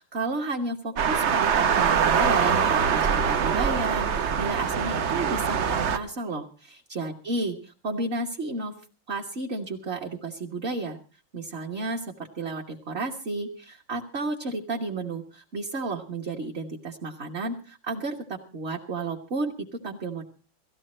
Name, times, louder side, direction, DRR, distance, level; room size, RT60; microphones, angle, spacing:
voice 1, 0.0-8.7 9.1-11.0 11.3-20.2, right 3 dB, 35° right, 0 dB, 1.4 m, -32 dB
sound 1, 1.0-6.0, right 6 dB, 55° right, 0.8 m, -23 dB
18.0 x 14.5 x 4.3 m, 0.36 s
omnidirectional pair, 2.2 m